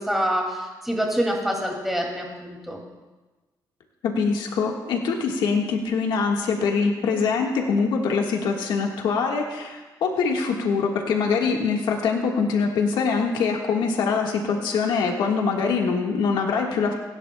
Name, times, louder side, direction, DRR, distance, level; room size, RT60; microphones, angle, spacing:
voice 1, 0.0-2.8, equal, 5° right, -1 dB, 2.4 m, -26 dB
voice 2, 4.0-16.9, left 5 dB, 90° left, 1 dB, 1.6 m, -23 dB
27.5 x 10.5 x 2.3 m, 1.2 s
cardioid pair, 140°, 8 cm